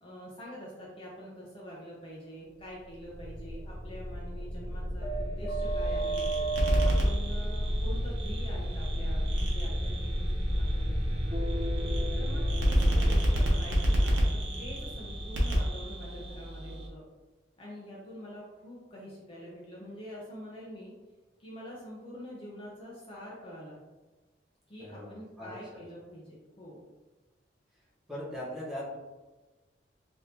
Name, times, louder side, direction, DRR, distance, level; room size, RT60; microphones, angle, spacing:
voice 1, 0.0-6.3 6.8-11.3 12.1-17.0 17.6-20.9 21.4-23.8 24.7-26.8, equal, 30° left, -5 dB, 0.5 m, -45 dB
sound 1, 2.9-16.7, equal, 30° right, 0.6 m, -32 dB
sound 2, 5.6-16.9, equal, 75° right, 0.8 m, -30 dB
voice 2, 24.8-25.8 28.1-29.0, left 1 dB, ahead, -8 dB, 1.0 m, -40 dB
3.4 x 2.6 x 2.8 m, 1.2 s
head